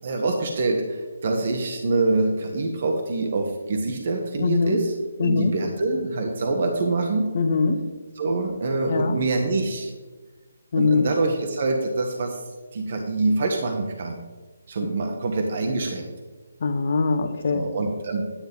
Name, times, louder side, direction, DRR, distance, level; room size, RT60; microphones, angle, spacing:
voice 1, 0.0-4.9 5.2-7.3 8.2-9.9 10.7-12.4 12.7-14.2 14.7-16.1 17.5-18.3, right 3 dB, 50° right, 3 dB, 1.2 m, -25 dB
voice 2, 4.4-4.8 5.2-5.5 7.3-7.8 8.9-9.2 10.7-11.1 16.6-17.7, left 4 dB, 55° left, 9 dB, 1.0 m, -22 dB
10.0 x 9.1 x 3.6 m, 1.3 s
figure-of-eight pair, 150°, 0 cm